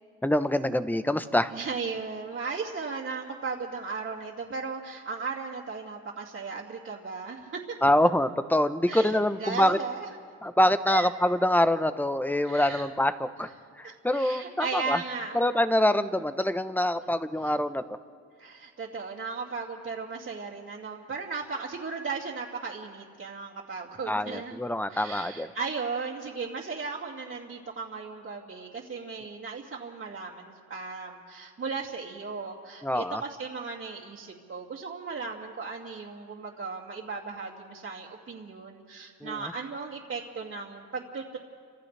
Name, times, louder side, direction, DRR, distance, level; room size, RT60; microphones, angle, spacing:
voice 1, 0.2-1.5 7.8-9.8 10.4-13.5 13.8-15.0 15.3-17.8 24.1-25.5 32.8-33.2 39.2-39.5, left 1 dB, 5° left, 11 dB, 0.9 m, -25 dB
voice 2, 1.5-7.6 8.9-10.1 10.9-11.1 12.4-12.9 13.8-15.4 15.9-16.1 18.4-24.6 24.9-41.4, right 4 dB, 50° right, -6 dB, 2.7 m, -36 dB
30.0 x 26.5 x 3.4 m, 2.1 s
cardioid pair, 90°, 30 cm